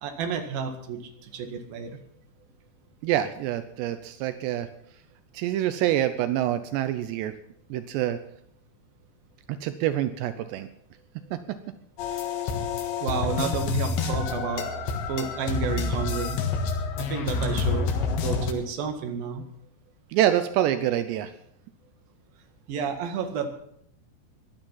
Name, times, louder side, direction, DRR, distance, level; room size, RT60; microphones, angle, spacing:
voice 1, 0.0-2.0 13.0-14.6 15.1-16.4 17.0-17.9 18.2-19.4 22.7-23.5, right 5 dB, 60° right, 5 dB, 3.3 m, -31 dB
voice 2, 3.0-4.7 5.3-7.3 7.7-8.2 9.6-10.7 20.1-21.3, right 12 dB, 80° right, 11 dB, 2.9 m, -26 dB
sound 1, 12.0-18.5, left 5 dB, 85° left, 3.9 m, -28 dB
16.0 x 11.5 x 5.7 m, 0.69 s
omnidirectional pair, 5.0 m